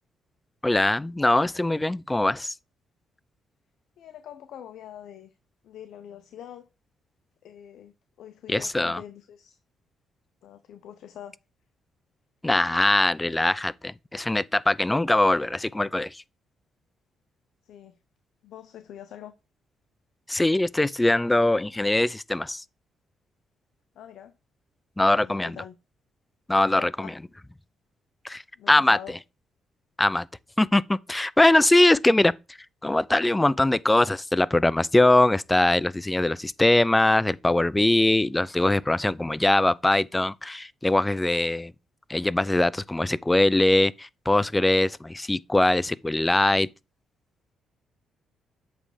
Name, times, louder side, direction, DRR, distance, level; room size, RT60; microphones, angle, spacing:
voice 1, 0.6-2.5 8.5-9.0 12.4-16.2 20.3-22.6 25.0-25.6 26.5-27.1 28.2-29.0 30.0-30.3 30.6-32.3 32.8-41.7 42.1-46.7, left 1 dB, 10° left, 0.3 m, -22 dB
voice 2, 4.0-5.3 5.6-6.6 7.4-9.6 10.4-11.4 17.6-18.0 18.4-19.3 23.9-24.3 25.1-25.8 26.7-27.2 28.6-29.1, left 10 dB, 75° left, 0.6 m, -44 dB
7.6 x 3.3 x 4.9 m
cardioid pair, 90°, 0 cm